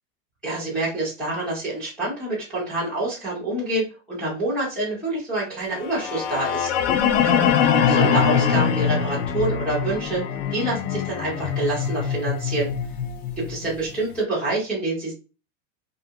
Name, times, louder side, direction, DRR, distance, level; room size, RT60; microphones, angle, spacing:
voice 1, 0.4-6.7 7.2-10.2 10.5-12.7 13.4-15.1, right 2 dB, 5° left, -10 dB, 0.3 m, -27 dB
sound 1, 5.8-13.9, left 7 dB, 75° left, 0.5 m, -23 dB
2.5 x 2.4 x 2.7 m, 0.32 s
supercardioid pair, 175°, 38 cm